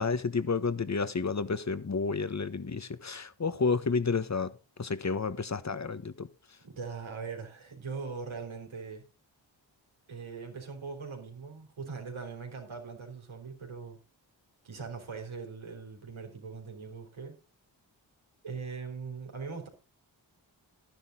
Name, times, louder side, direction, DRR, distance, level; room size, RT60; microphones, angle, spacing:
voice 1, 0.0-4.5 4.8-6.3, left 4 dB, 35° left, 1.2 m, -30 dB
voice 2, 6.6-9.0 10.1-14.0 14.6-17.4 18.4-19.7, right 5 dB, 85° right, 3.7 m, -41 dB
12.0 x 10.5 x 3.9 m
cardioid pair, 45°, 46 cm